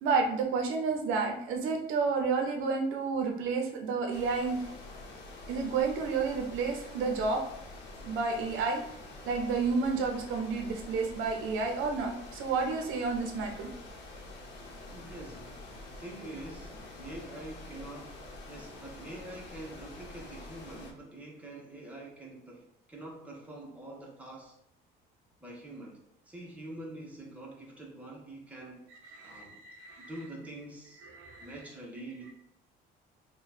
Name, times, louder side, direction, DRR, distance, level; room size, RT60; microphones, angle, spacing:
voice 1, 0.0-4.6 5.5-7.4 8.0-8.8 9.3-13.7 29.2-30.1 31.0-31.5, right 4 dB, 80° right, 3 dB, 0.7 m, -30 dB
sound 1, 4.1-20.9, left 2 dB, 60° left, 0.9 m, -47 dB
voice 2, 14.9-15.7 16.0-24.5 25.4-26.0 26.3-28.9 29.2-29.6 30.0-31.1 31.4-32.3, right 1 dB, 5° right, -3 dB, 1.0 m, -45 dB
3.0 x 2.3 x 4.1 m, 0.76 s
cardioid pair, 115°, 20 cm